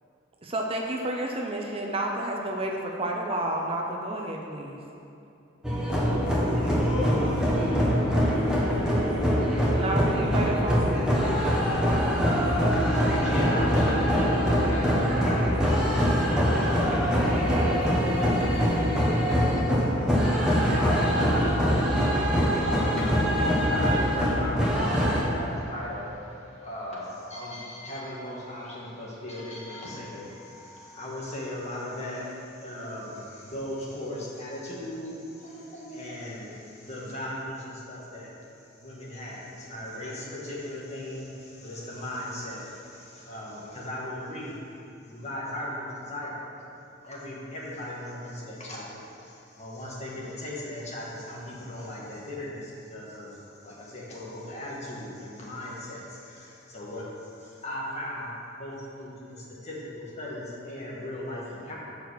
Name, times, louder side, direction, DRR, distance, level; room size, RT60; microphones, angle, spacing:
voice 1, 0.4-4.8 9.7-10.9 17.3-19.2, right 1 dB, 30° right, 0 dB, 0.6 m, -31 dB
sound 1, 5.6-25.2, equal, 5° right, 1.3 m, -23 dB
voice 2, 6.8-10.1, left 1 dB, 20° left, -2 dB, 0.5 m, -42 dB
voice 3, 12.8-16.1 20.5-21.8 23.3-38.3 38.8-44.6 45.0-46.5 47.0-58.3 58.6-61.7, left 1 dB, 35° left, -5 dB, 1.5 m, -37 dB
6.6 x 4.8 x 6.5 m, 2.7 s
head